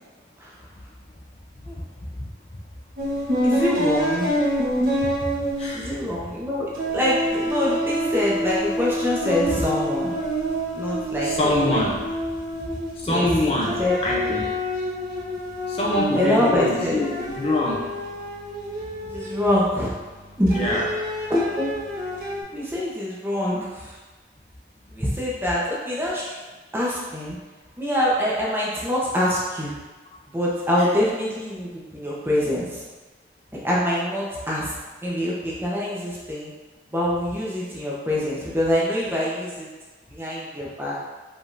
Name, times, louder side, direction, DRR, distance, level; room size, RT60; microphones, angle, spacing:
voice 1, 1.6-2.6 5.0-6.0 11.2-12.1 12.6-14.5 15.7-17.1 17.4-18.0 20.5-20.9 30.1-30.2 30.8-30.9, left 1 dB, 35° left, -4 dB, 0.6 m, -25 dB
sound 1, 3.0-6.4 6.7-13.2 13.6-19.9 20.5-22.4, equal, 50° right, 1.2 m, -27 dB
voice 2, 3.4-4.5 5.7-10.2 10.8-11.3 11.7-11.9 13.1-13.3 13.8-13.9 16.1-17.0 19.1-19.9 20.4-20.8 21.3-21.7 22.5-24.0 24.9-26.4 26.7-27.4 27.8-29.8 30.3-32.8 33.6-34.7 35.0-36.5 36.9-39.7 40.1-41.1, left 1 dB, 10° right, -6 dB, 0.8 m, -25 dB
5.1 x 3.6 x 2.6 m, 1.3 s
head